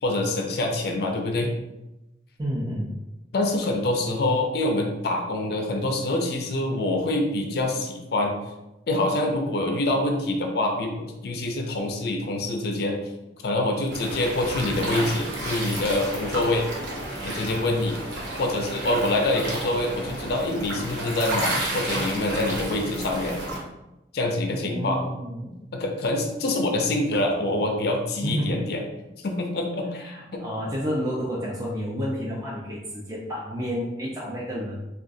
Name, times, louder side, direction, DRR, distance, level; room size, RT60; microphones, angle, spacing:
voice 1, 0.0-1.5 3.3-8.3 8.9-13.0 13.4-16.7 17.2-18.0 18.4-23.4 24.1-25.0 25.7-28.8 29.2-30.4, left 2 dB, 60° left, 3 dB, 0.4 m, -25 dB
voice 2, 2.4-2.9 24.5-25.5 28.2-28.6 29.9-34.8, equal, 20° right, -6 dB, 0.4 m, -30 dB
sound 1, 13.9-23.6, right 1 dB, 85° right, 0.8 m, -31 dB
3.7 x 2.3 x 2.5 m, 0.97 s
head